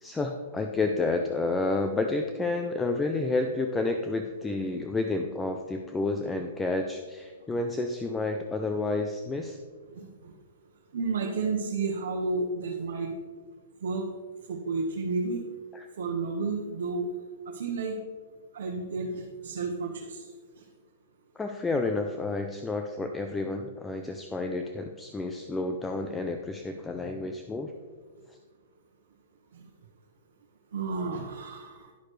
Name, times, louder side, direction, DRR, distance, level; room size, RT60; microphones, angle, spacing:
voice 1, 0.0-9.6 15.7-15.8 21.4-27.7 28.3-28.4, left 3 dB, 10° left, 4 dB, 0.4 m, -30 dB
voice 2, 9.9-10.3 10.9-13.1 13.8-14.1 14.5-15.4 16.0-17.1 17.5-18.0 18.5-20.2 20.6-20.7 29.5-29.6 30.7-31.9, right 4 dB, 75° right, 0 dB, 1.1 m, -31 dB
10.5 x 6.5 x 3.2 m, 1.4 s
hypercardioid pair, 165°, 0 cm